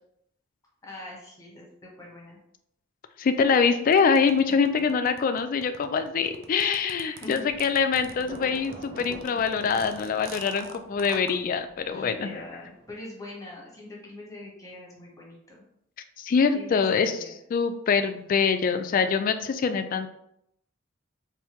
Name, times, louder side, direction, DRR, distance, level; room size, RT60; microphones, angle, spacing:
voice 1, 0.8-2.4 4.5-4.9 7.0-7.4 11.8-15.6 16.5-17.4, left 2 dB, 20° left, -2 dB, 1.0 m, -43 dB
voice 2, 3.2-12.4 16.2-17.1 17.5-20.1, left 5 dB, 45° left, 9 dB, 0.3 m, -24 dB
sound 1, 3.9-11.3, right 5 dB, 80° right, 0.4 m, -45 dB
sound 2, 7.5-12.9, right 1 dB, 30° right, 0.5 m, -46 dB
3.5 x 2.6 x 2.9 m, 0.75 s
head